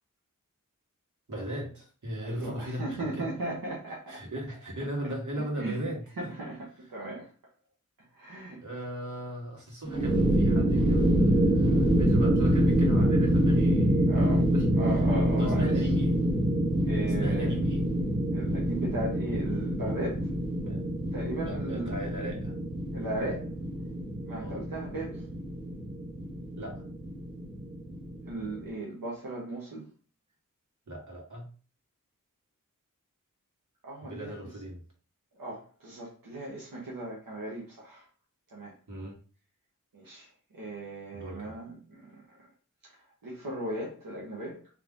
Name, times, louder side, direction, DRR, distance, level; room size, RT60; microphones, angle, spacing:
voice 1, 1.3-3.3 4.1-6.0 8.6-15.0 15.4-16.3 17.0-17.8 20.6-20.8 21.4-22.6 24.3-24.6 26.6-26.8 30.9-31.5 34.0-34.8 38.9-39.2 41.1-41.5, equal, 60° right, 2.0 m, -37 dB
voice 2, 2.2-4.2 5.6-5.8 6.2-7.3 8.1-8.6 14.1-14.5 14.7-15.7 16.8-17.6 18.3-20.3 21.1-21.9 22.9-23.5 24.2-25.3 28.3-29.9 33.8-34.3 35.4-38.1 38.5-38.7 39.9-42.5 42.8-44.7, right 1 dB, 90° right, 1.1 m, -37 dB
sound 1, 9.9-28.7, equal, 15° right, 1.4 m, -26 dB
3.6 x 3.2 x 3.8 m
wide cardioid pair, 45°, 33 cm